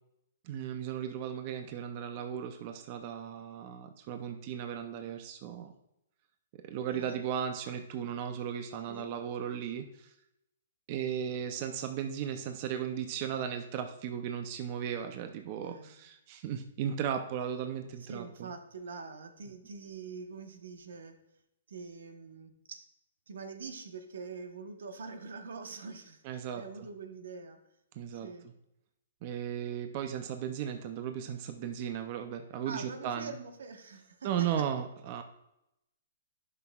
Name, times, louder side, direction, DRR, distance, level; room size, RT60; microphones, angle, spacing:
voice 1, 0.4-5.7 6.7-10.1 10.9-18.5 26.2-26.9 28.0-28.3 29.2-33.3 34.2-35.2, right 8 dB, 35° right, 6 dB, 0.5 m, -36 dB
voice 2, 15.6-16.0 18.0-21.2 21.7-22.8 23.3-27.6 28.1-28.5 29.6-29.8 32.6-34.6, right 4 dB, 85° right, 6 dB, 1.0 m, -44 dB
10.5 x 6.0 x 2.3 m, 0.85 s
hypercardioid pair, 160°, 0 cm